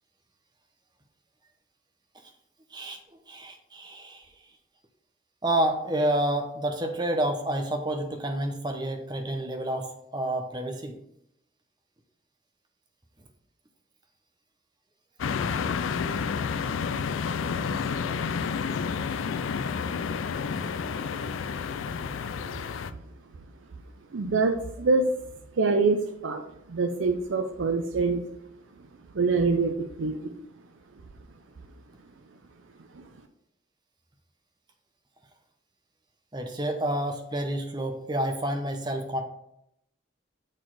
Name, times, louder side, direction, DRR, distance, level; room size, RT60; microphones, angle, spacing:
voice 1, 3.3-4.2 5.4-11.0 36.3-39.2, right 1 dB, 20° right, 5 dB, 0.7 m, -29 dB
sound 1, 15.2-22.9, left 6 dB, 90° left, 0.4 m, -30 dB
voice 2, 24.1-25.1 25.5-28.2 29.1-30.4 32.9-33.0, right 3 dB, 85° right, 5 dB, 0.6 m, -26 dB
6.5 x 4.0 x 4.7 m, 0.78 s
head